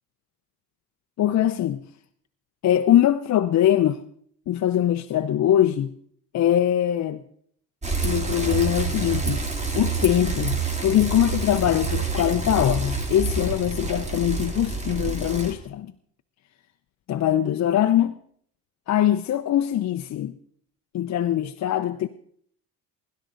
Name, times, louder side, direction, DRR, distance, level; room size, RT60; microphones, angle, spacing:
voice 1, 1.2-1.8 2.6-4.0 4.5-5.9 6.3-7.2 8.0-9.4 9.8-15.9 17.1-18.2 18.9-20.3 20.9-22.1, left 11 dB, 50° left, 0.7 m, -22 dB
Bicycle, 7.8-15.5, right 4 dB, 20° right, 2.6 m, -28 dB
23.5 x 11.5 x 4.0 m
cardioid pair, 95°, 35 cm